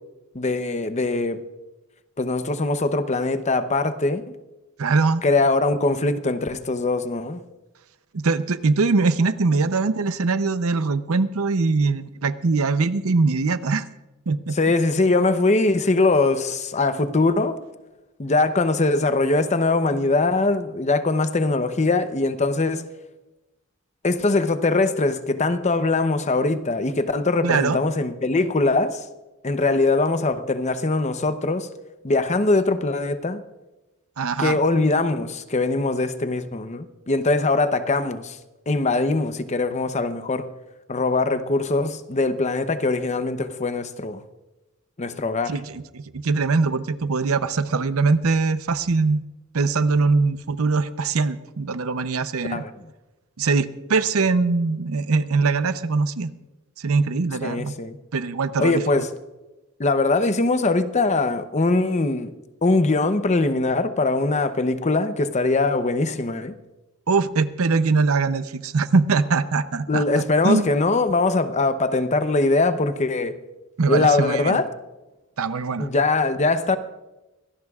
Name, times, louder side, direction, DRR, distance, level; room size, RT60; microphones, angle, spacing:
voice 1, 0.3-1.4 2.2-4.3 5.2-7.4 14.5-17.6 18.2-22.9 24.0-29.1 29.4-31.7 32.0-33.4 34.4-38.4 38.7-40.5 40.9-44.2 45.0-45.6 52.5-52.7 57.4-58.0 58.6-59.1 59.8-62.3 62.6-66.6 69.9-73.4 73.9-74.7 75.8-76.8, left 3 dB, 35° left, 0.8 m, -22 dB
voice 2, 4.8-5.2 8.1-13.9 14.3-14.6 27.4-27.8 34.2-34.6 45.5-49.2 49.5-52.6 53.4-56.3 56.8-57.7 58.1-58.8 67.1-70.0 70.4-70.7 73.8-74.6 75.4-75.9, right 4 dB, 90° right, 0.7 m, -22 dB
24.5 x 17.5 x 2.4 m
head